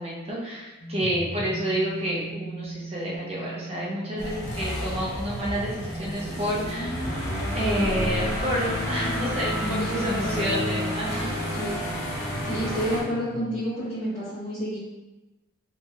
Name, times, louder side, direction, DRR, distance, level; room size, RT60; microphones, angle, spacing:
voice 1, 0.0-7.1 7.5-11.3, equal, 30° right, -5 dB, 0.6 m, -29 dB
sound 1, 0.8-13.6, right 1 dB, 40° left, 0.5 m, -36 dB
sound 2, 4.2-13.0, left 1 dB, 80° left, 0.8 m, -31 dB
voice 2, 9.6-10.2 11.5-11.9 12.4-14.8, equal, 15° left, -16 dB, 1.1 m, -30 dB
2.9 x 2.8 x 2.3 m, 1.1 s
head